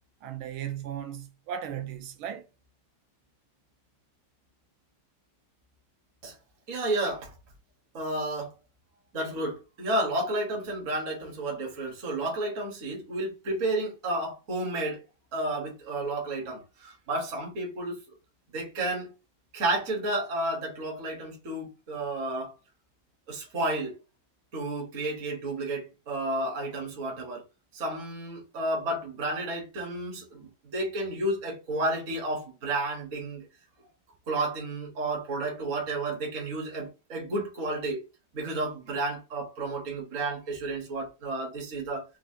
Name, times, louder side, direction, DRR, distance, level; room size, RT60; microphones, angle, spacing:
voice 1, 0.2-2.5, right 9 dB, 85° right, 1.5 m, -36 dB
voice 2, 6.7-7.3 7.9-8.5 9.1-15.0 15.3-18.0 18.5-19.1 19.5-22.5 23.3-23.9 24.5-27.4 27.7-33.5 34.3-38.0 38.3-42.0, right 2 dB, 45° right, 1.4 m, -31 dB
4.8 x 2.5 x 2.7 m
omnidirectional pair, 2.2 m